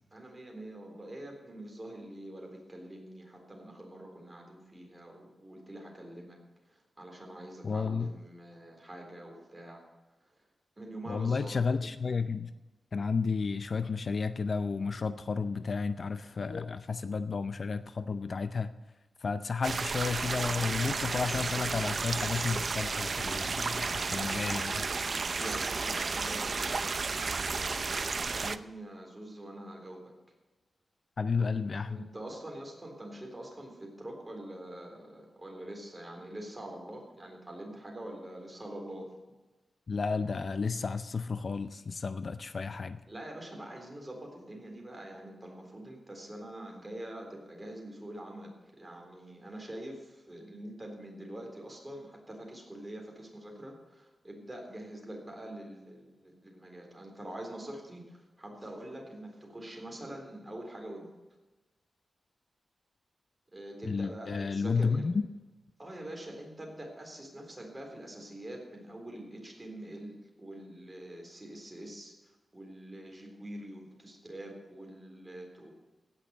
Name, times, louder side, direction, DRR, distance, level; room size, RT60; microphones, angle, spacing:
voice 1, 0.1-6.4 6.7-9.8 10.8-11.5 25.3-30.1 31.4-31.5 31.9-39.1 43.1-48.5 48.8-61.1 63.5-65.1 65.8-72.1 72.5-75.7, right 1 dB, 20° right, 1 dB, 3.8 m, -45 dB
voice 2, 7.6-8.1 11.1-12.5 12.9-18.7 19.2-24.9 31.2-32.1 39.9-43.0 63.8-65.3, left 5 dB, 50° left, 12 dB, 0.5 m, -32 dB
sound 1, 19.6-28.6, right 4 dB, 50° right, 0.5 m, -32 dB
16.5 x 6.2 x 7.9 m, 1.1 s
wide cardioid pair, 100°, 0 cm